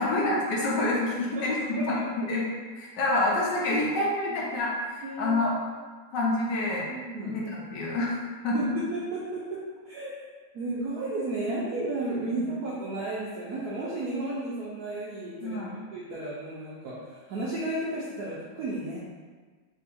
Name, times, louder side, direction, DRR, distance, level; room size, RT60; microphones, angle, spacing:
voice 1, 0.0-2.0 2.3-2.4 2.8-5.5 6.1-6.8 7.2-8.2 8.4-8.6 12.3-12.4 15.4-15.7, left 2 dB, 65° left, -4 dB, 1.3 m, -27 dB
voice 2, 5.0-5.4 6.9-7.4 8.5-9.6 9.8-10.1 10.5-19.0, right 2 dB, 70° right, -7 dB, 0.9 m, -33 dB
3.6 x 2.8 x 4.1 m, 1.4 s
omnidirectional pair, 2.3 m